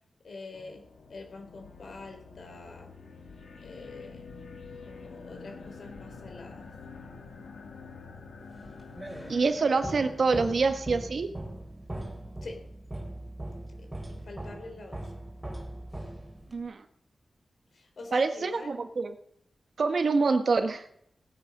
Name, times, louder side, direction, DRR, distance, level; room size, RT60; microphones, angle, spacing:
voice 1, 0.2-0.8 1.1-2.9 3.6-4.3 4.8-6.7 12.4-12.6 13.8-15.1 17.7-18.7, left 3 dB, 65° left, 4 dB, 3.8 m, -45 dB
sound 1, 0.5-11.0, left 4 dB, 90° left, 2.2 m, -47 dB
sound 2, 8.6-16.7, right 1 dB, 10° right, 3.5 m, -40 dB
voice 2, 9.3-11.3 16.5-16.8 18.1-19.1 19.8-20.8, right 4 dB, 60° right, 8 dB, 1.4 m, -26 dB
18.0 x 9.5 x 5.3 m, 0.70 s
wide cardioid pair, 110°, 0 cm